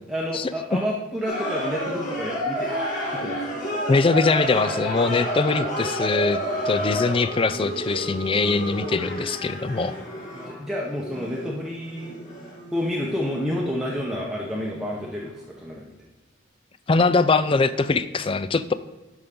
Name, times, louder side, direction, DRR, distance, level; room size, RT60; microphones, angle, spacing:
voice 1, 0.1-2.7 3.1-3.6 6.6-6.7 10.3-12.2 12.7-15.9, equal, ahead, -4 dB, 0.8 m, -29 dB
sound 1, 1.2-14.7 14.9-15.1, equal, 40° left, 3.1 m, -30 dB
voice 2, 3.9-10.0 16.9-18.7, left 3 dB, 25° left, 14 dB, 0.3 m, -22 dB
12.5 x 5.3 x 3.7 m, 1.1 s
head